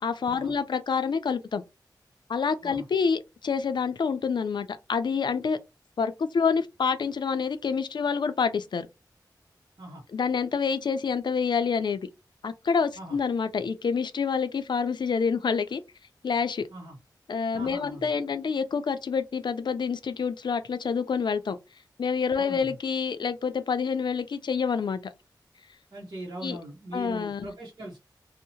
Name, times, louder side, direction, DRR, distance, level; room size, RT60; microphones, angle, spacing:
voice 1, 0.0-1.6 2.3-5.6 6.0-8.9 10.1-12.1 12.4-15.8 16.2-16.6 17.3-21.6 22.0-25.1 26.4-26.6 26.9-27.5, left 5 dB, 80° left, 0.4 m, -27 dB
voice 2, 17.5-18.1 22.4-22.8 25.9-28.0, right 1 dB, 60° right, 0.8 m, -40 dB
2.7 x 2.0 x 2.7 m
wide cardioid pair, 90°, 8 cm